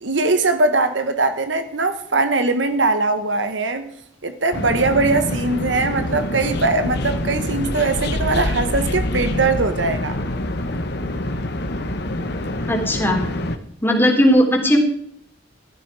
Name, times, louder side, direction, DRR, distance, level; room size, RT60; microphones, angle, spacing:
voice 1, 0.0-3.9 4.2-10.2, right 3 dB, 75° right, 1.4 m, -21 dB
sound 1, 4.5-13.6, left 1 dB, 60° left, 1.4 m, -25 dB
voice 2, 12.7-13.3 13.8-14.8, equal, 10° left, 3.2 m, -17 dB
15.0 x 13.0 x 4.9 m
head